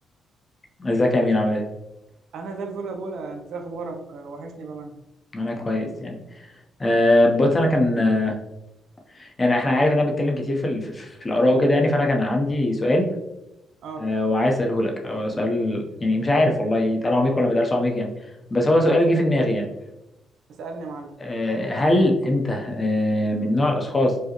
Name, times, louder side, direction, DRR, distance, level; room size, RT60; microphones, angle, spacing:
voice 1, 0.8-1.6 5.3-6.5 6.8-8.4 9.1-13.1 14.0-18.1 18.5-19.7 21.2-24.2, left 1 dB, 25° left, 2 dB, 0.7 m, -21 dB
voice 2, 2.3-5.0 13.8-14.1 20.5-21.2, right 3 dB, 75° right, 4 dB, 0.6 m, -34 dB
4.7 x 2.1 x 2.9 m, 0.92 s
cardioid pair, 90°, 0 cm